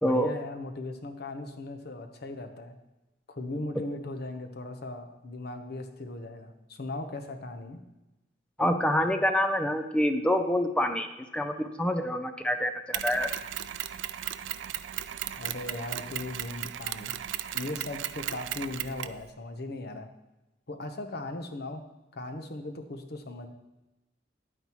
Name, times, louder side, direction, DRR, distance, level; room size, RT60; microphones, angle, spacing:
voice 1, 0.0-2.8 3.3-7.8 15.4-17.2 17.5-20.1 20.7-21.8 22.1-23.5, left 2 dB, 60° left, 6 dB, 0.9 m, -38 dB
voice 2, 8.6-13.3, equal, 5° left, 7 dB, 0.4 m, -27 dB
Mechanisms, 12.9-19.2, right 11 dB, 90° right, 0.4 m, -36 dB
10.0 x 9.1 x 3.1 m, 1.0 s
head